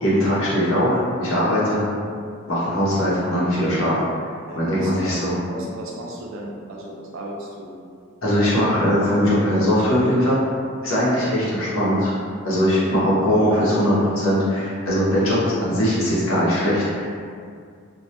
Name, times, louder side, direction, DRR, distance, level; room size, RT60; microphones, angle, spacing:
voice 1, 0.0-1.9 2.5-4.0 4.5-5.4 8.2-10.4 10.8-12.1 12.4-17.1, equal, 85° left, -8 dB, 0.8 m, -20 dB
voice 2, 4.5-5.2 5.5-7.8 12.8-13.0, right 1 dB, 75° right, -3 dB, 0.5 m, -35 dB
2.2 x 2.1 x 2.8 m, 2.2 s
head